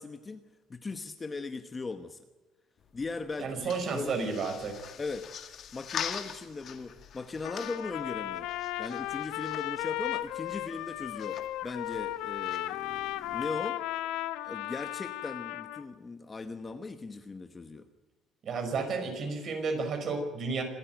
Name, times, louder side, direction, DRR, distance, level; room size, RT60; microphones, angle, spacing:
voice 1, 0.0-2.2 2.9-4.4 5.0-5.3 5.7-8.5 8.8-13.8 14.4-17.9, left 3 dB, 15° left, 8 dB, 1.0 m, -39 dB
sound 1, 2.8-13.7, left 8 dB, 40° left, 1.9 m, -44 dB
voice 2, 3.4-4.8 18.4-20.6, right 4 dB, 35° right, 6 dB, 5.2 m, -32 dB
Trumpet, 7.4-15.8, left 15 dB, 75° left, 1.1 m, -35 dB
26.0 x 13.5 x 9.2 m, 1.3 s
cardioid pair, 165°, 0 cm